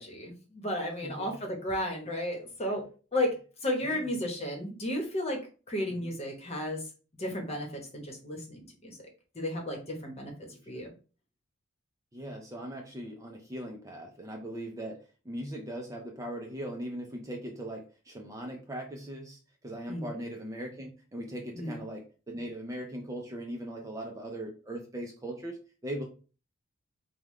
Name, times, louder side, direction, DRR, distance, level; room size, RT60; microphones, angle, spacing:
voice 1, 0.0-2.8 3.1-3.3 3.6-5.4 5.7-6.8 7.2-9.0 9.3-10.3 10.7-10.9 19.9-20.1 21.6-21.8, left 1 dB, 30° left, 2 dB, 1.1 m, -33 dB
voice 2, 1.0-1.4 3.8-4.1 5.9-6.1 10.5-10.9 12.1-26.0, right 1 dB, 15° right, 1 dB, 0.5 m, -40 dB
5.4 x 2.3 x 3.2 m, 0.36 s
head